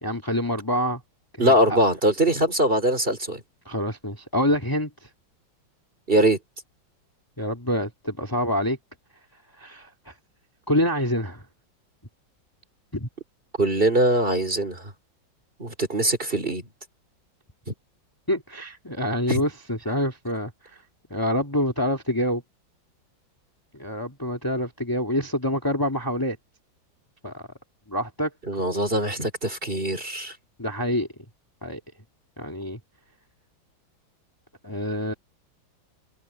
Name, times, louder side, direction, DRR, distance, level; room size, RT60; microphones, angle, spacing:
voice 1, 0.0-1.0 1.4-1.8 3.7-4.9 7.4-8.8 9.6-10.1 10.7-11.5 12.9-13.1 18.3-20.5 21.1-22.4 23.7-26.4 27.2-27.4 27.9-28.3 30.6-31.1 31.6-31.8 32.4-32.8 34.6-35.1, equal, 10° left, 2.2 m, -26 dB
voice 2, 1.4-3.4 6.1-6.4 13.6-14.8 15.6-16.6 17.7-17.8 19.3-19.4 28.5-30.3, right 1 dB, 25° right, 3.7 m, -22 dB
omnidirectional pair, 2.1 m